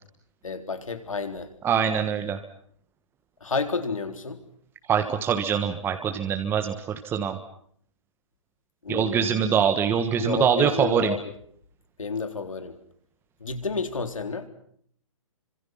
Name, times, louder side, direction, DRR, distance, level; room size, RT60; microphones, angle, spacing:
voice 1, 0.4-1.5 3.4-4.4 8.8-9.5 10.2-11.2 12.0-12.8 13.4-14.5, left 4 dB, 85° left, 7 dB, 4.0 m, -30 dB
voice 2, 1.6-2.4 4.9-7.4 8.9-11.1, right 8 dB, 15° right, 6 dB, 1.4 m, -24 dB
30.0 x 25.5 x 5.8 m, 0.63 s
hypercardioid pair, 140°, 17 cm